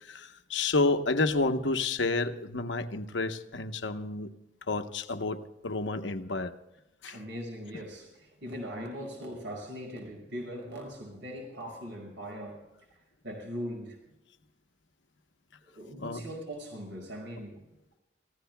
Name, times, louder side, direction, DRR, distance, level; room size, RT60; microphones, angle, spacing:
voice 1, 0.0-4.3 4.7-6.5 7.0-7.2 16.0-16.2, left 3 dB, 85° left, 8 dB, 1.0 m, -30 dB
voice 2, 7.1-12.6 13.2-14.0 15.7-17.6, equal, 90° right, 0 dB, 5.5 m, -40 dB
29.5 x 15.5 x 2.2 m, 0.98 s
head